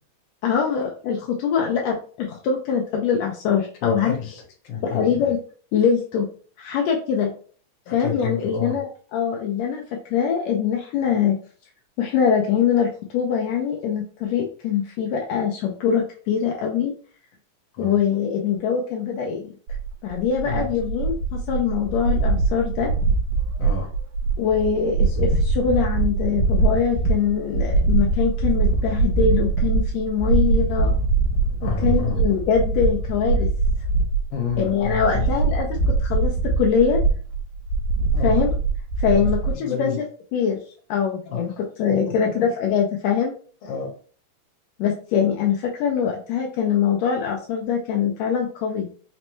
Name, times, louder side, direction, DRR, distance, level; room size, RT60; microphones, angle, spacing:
voice 1, 0.4-4.2 4.8-5.4 5.7-6.3 6.6-7.3 7.9-9.8 10.1-11.3 12.0-16.9 17.8-19.5 20.0-22.9 24.4-30.9 31.8-33.5 34.6-37.0 38.2-38.5 39.0-40.0 40.3-40.6 40.9-41.5 41.8-43.3 44.8-48.9, left 7 dB, 85° left, 0 dB, 1.6 m, -23 dB
voice 2, 3.8-5.3 7.8-8.8 17.7-17.9 20.4-20.7 23.6-23.9 31.6-32.2 34.3-35.3 38.1-38.4 39.2-39.3 39.5-40.0 41.3-41.4 42.0-42.4 43.6-43.9, left 7 dB, 60° left, -1 dB, 1.6 m, -30 dB
sound 1, 19.7-39.5, right 3 dB, 85° right, 2.2 m, -22 dB
5.2 x 2.1 x 3.0 m, 0.43 s
omnidirectional pair, 3.7 m